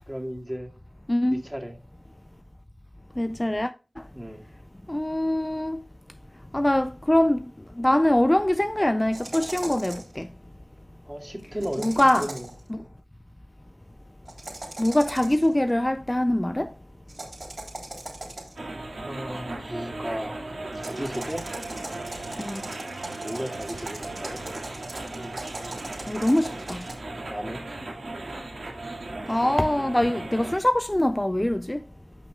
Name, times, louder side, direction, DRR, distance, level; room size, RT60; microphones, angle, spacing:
voice 1, 0.1-0.7 1.3-1.8 4.1-4.4 11.1-12.5 19.0-21.5 23.2-24.4 27.3-27.6, equal, 10° right, 2.1 m, -34 dB
voice 2, 1.1-1.4 3.2-3.7 4.9-5.8 6.5-7.5 7.8-10.3 11.8-12.3 12.7-12.8 14.8-16.7 22.4-22.6 26.1-26.8 29.3-31.8, left 1 dB, 20° left, 0.3 m, -23 dB
sound 1, 9.1-10.2 11.6-12.6 14.3-15.5 17.1-18.7 20.7-26.9, right 2 dB, 60° right, 3.6 m, -39 dB
sound 2, 18.6-30.6, right 2 dB, 85° right, 2.1 m, -37 dB
15.0 x 5.7 x 2.3 m
cardioid pair, 40°, 0 cm